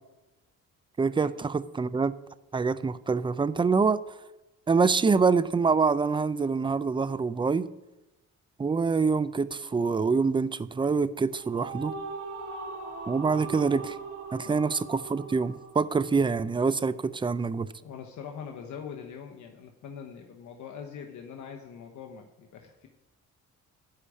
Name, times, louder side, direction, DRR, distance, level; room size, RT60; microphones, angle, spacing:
voice 1, 1.0-2.1 2.5-4.0 4.7-7.7 8.6-12.0 13.1-14.0 14.3-17.7, right 4 dB, 15° right, 15 dB, 0.5 m, -25 dB
sound 1, 11.3-16.6, right 4 dB, 75° right, 3.7 m, -40 dB
voice 2, 17.8-22.9, left 7 dB, 70° left, 3 dB, 1.1 m, -43 dB
11.5 x 5.0 x 8.2 m, 0.99 s
cardioid pair, 90°, 30 cm